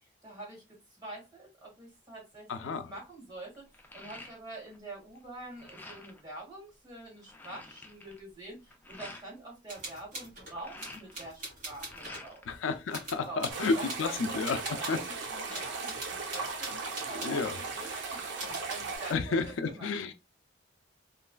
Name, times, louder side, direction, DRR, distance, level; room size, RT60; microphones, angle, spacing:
voice 1, 0.2-0.6 1.0-3.5 3.9-12.4 13.2-19.4 19.6-19.9, right 2 dB, 20° right, 1.6 m, -46 dB
sound 1, 2.3-2.6 3.0-4.8 5.1-6.3 6.8-6.9 7.0-9.3 10.3-12.6 12.9-13.8, left 2 dB, 10° left, 0.3 m, -49 dB
voice 2, 2.5-2.9 12.5-15.0 15.5-15.7 16.7-16.8 17.1-17.6 19.1-20.1, left 4 dB, 90° left, 0.4 m, -32 dB
sound 2, 9.7-12.2 12.9-14.1 14.4-17.8 18.4-19.0, right 2 dB, 40° right, 1.6 m, -43 dB
sound 3, 13.5-19.1, right 4 dB, 70° right, 0.7 m, -37 dB
3.1 x 2.3 x 2.2 m
head